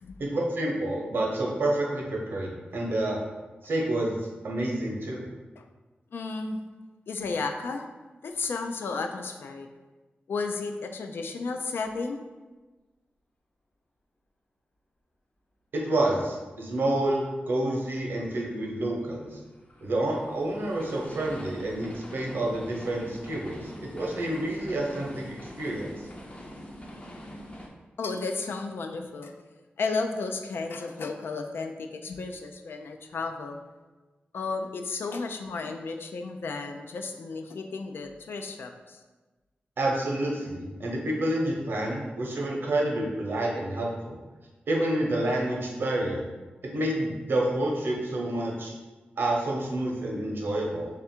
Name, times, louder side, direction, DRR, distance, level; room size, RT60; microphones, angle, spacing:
voice 1, 0.2-3.2 3.6-5.2 15.7-19.4 19.8-25.9 39.8-44.2 44.7-46.2 46.7-48.7 49.2-50.9, right 1 dB, 70° right, -1 dB, 0.8 m, -28 dB
voice 2, 6.1-6.6 7.1-7.9 8.2-9.7 10.3-12.2 28.0-29.3 29.8-33.6 34.3-39.0, left 4 dB, 85° left, 5 dB, 0.4 m, -33 dB
sound 1, 18.4-27.7, equal, 35° left, 0.6 m, -44 dB
3.3 x 2.4 x 4.3 m, 1.2 s
wide cardioid pair, 125°, 4 cm